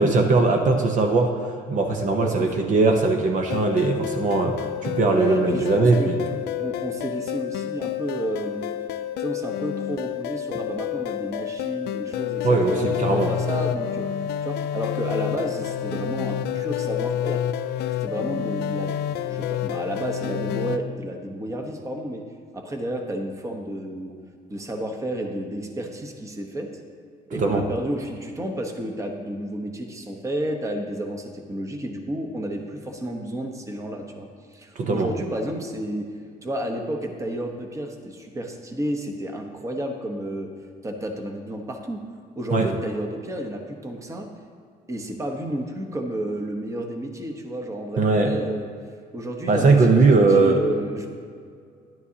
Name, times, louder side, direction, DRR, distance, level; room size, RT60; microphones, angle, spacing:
voice 1, 0.0-6.4 12.4-13.3 27.3-27.7 34.8-35.1 42.5-42.7 48.0-48.4 49.5-50.6, right 3 dB, 50° right, 3 dB, 0.9 m, -20 dB
voice 2, 2.2-2.5 5.1-6.2 6.5-8.7 9.2-14.1 14.4-17.4 18.0-19.0 19.3-22.3 22.5-24.1 24.5-26.7 27.3-36.1 36.4-40.5 40.8-42.0 42.4-44.3 44.9-48.7 49.1-51.1, right 1 dB, 20° right, 3 dB, 1.0 m, -31 dB
sound 1, 3.5-20.8, left 10 dB, 80° left, 0.4 m, -29 dB
12.5 x 11.0 x 2.8 m, 2.1 s
cardioid pair, 110°, 17 cm